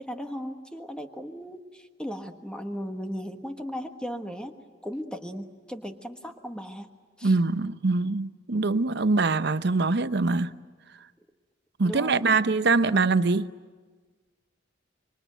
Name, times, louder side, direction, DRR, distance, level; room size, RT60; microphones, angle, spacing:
voice 1, 0.0-4.6 4.8-6.9 7.2-7.3 11.8-12.4, equal, 5° left, 1.3 m, -36 dB
voice 2, 7.2-10.5 11.8-13.5, right 3 dB, 60° right, 0.8 m, -23 dB
26.0 x 24.5 x 9.2 m
head